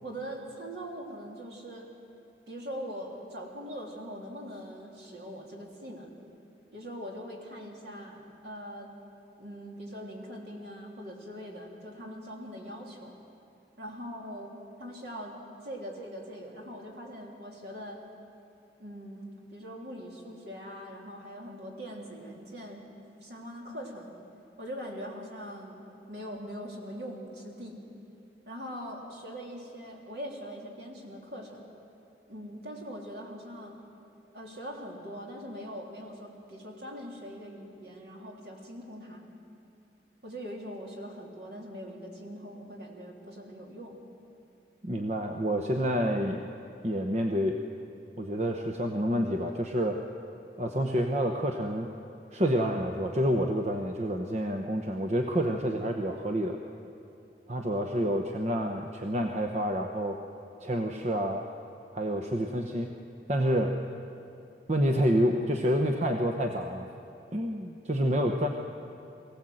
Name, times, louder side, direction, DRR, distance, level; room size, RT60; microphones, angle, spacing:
voice 1, 0.0-1.9 2.5-6.1 6.7-8.9 9.4-13.1 13.8-15.4 15.6-18.0 18.8-22.8 23.2-24.1 24.6-25.8 26.1-27.8 28.5-31.7 32.3-33.8 34.3-39.2 40.2-44.0, equal, 70° right, -1 dB, 3.3 m, -42 dB
voice 2, 44.8-46.5 46.8-47.6 48.2-50.0 50.6-51.9 52.3-56.6 57.5-60.2 60.6-61.4 61.9-62.9 63.3-63.8 64.7-66.9 67.3-68.5, equal, 40° right, 3 dB, 0.9 m, -28 dB
23.0 x 16.5 x 7.8 m, 2.7 s
head